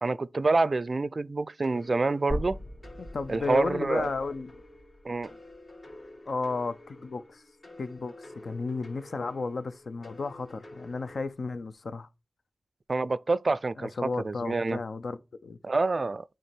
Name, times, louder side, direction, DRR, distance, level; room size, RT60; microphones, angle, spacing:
voice 1, 0.0-2.6 3.3-4.1 5.0-5.3 12.9-14.8 15.6-16.2, right 3 dB, 50° right, 0.3 m, -27 dB
sound 1, 1.6-11.2, left 1 dB, 60° left, 2.6 m, -50 dB
sound 2, 2.3-6.4 6.8-6.9 8.3-8.4, equal, 35° left, 3.0 m, -40 dB
voice 2, 3.0-4.6 6.3-7.4 7.8-12.1 13.8-15.6, left 3 dB, 75° left, 0.7 m, -33 dB
9.1 x 3.4 x 4.3 m
wide cardioid pair, 75°, 0 cm